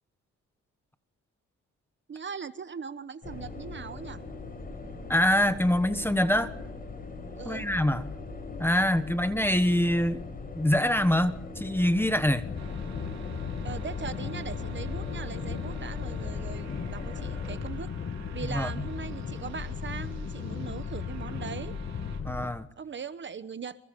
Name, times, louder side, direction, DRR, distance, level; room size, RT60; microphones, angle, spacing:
voice 1, 2.1-4.2 7.4-7.7 13.6-17.9 18.3-21.7 22.8-23.8, right 6 dB, 40° right, 1.1 m, -40 dB
sound 1, 3.2-17.6, left 3 dB, 30° left, 7.2 m, -41 dB
voice 2, 5.1-6.5 7.4-8.0 8.6-10.2 10.5-12.4 18.5-18.7 22.2-22.7, left 1 dB, 5° left, 1.3 m, -24 dB
sound 2, 12.4-22.5, left 6 dB, 45° left, 1.9 m, -36 dB
sound 3, 12.6-22.2, right 7 dB, 60° right, 3.9 m, -50 dB
25.5 x 22.5 x 5.3 m
cardioid pair, 90°, 30 cm